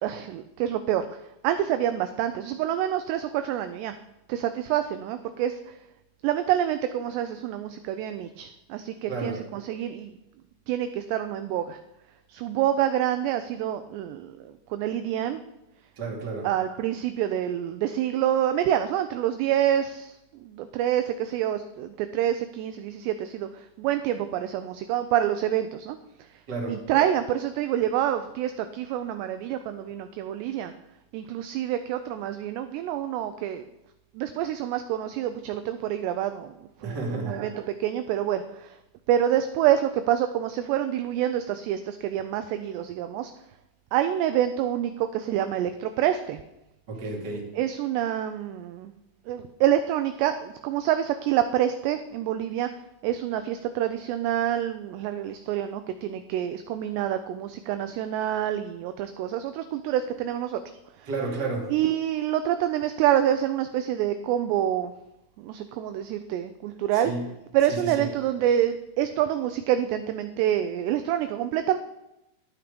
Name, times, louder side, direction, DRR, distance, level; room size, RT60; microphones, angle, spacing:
voice 1, 0.0-4.0 4.3-5.8 6.2-10.1 10.7-11.8 12.3-15.4 16.4-26.4 26.7-30.7 31.1-33.7 34.1-38.8 39.1-43.3 43.9-46.4 47.5-48.9 49.3-52.7 53.0-60.6 61.0-61.1 61.7-64.9 65.4-67.1 67.5-71.8, right 11 dB, 85° right, 9 dB, 2.5 m, -27 dB
voice 2, 9.1-9.4 16.0-16.5 26.5-26.8 36.8-37.4 46.9-47.5 61.1-61.7 66.9-67.2 67.7-68.1, right 3 dB, 30° right, -2 dB, 2.1 m, -31 dB
12.0 x 9.2 x 5.1 m, 0.92 s
omnidirectional pair, 5.5 m